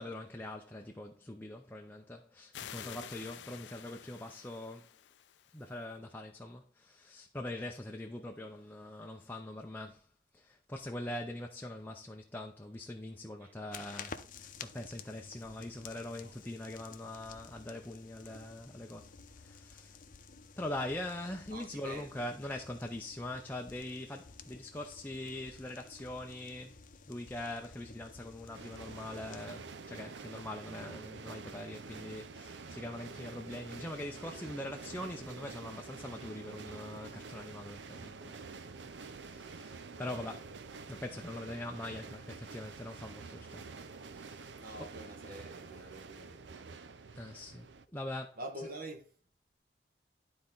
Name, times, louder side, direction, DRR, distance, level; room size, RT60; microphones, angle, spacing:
voice 1, 0.0-4.9 5.5-10.1 10.3-20.0 20.6-38.4 39.0-40.5 40.9-43.6 44.1-44.5 44.8-44.9 47.1-47.7 47.9-48.4, left 1 dB, 10° left, 0.6 m, -43 dB
sound 1, 2.5-5.8, left 10 dB, 85° left, 0.5 m, -49 dB
voice 2, 2.8-3.4 13.4-13.5 16.2-16.3 21.5-22.5 40.5-40.6 44.6-46.8 48.4-49.1, right 1 dB, 55° right, 1.6 m, -47 dB
sound 2, 13.7-29.5, left 5 dB, 50° left, 0.7 m, -52 dB
sound 3, 28.5-47.8, right 4 dB, 80° right, 0.6 m, -48 dB
11.5 x 4.3 x 3.9 m
head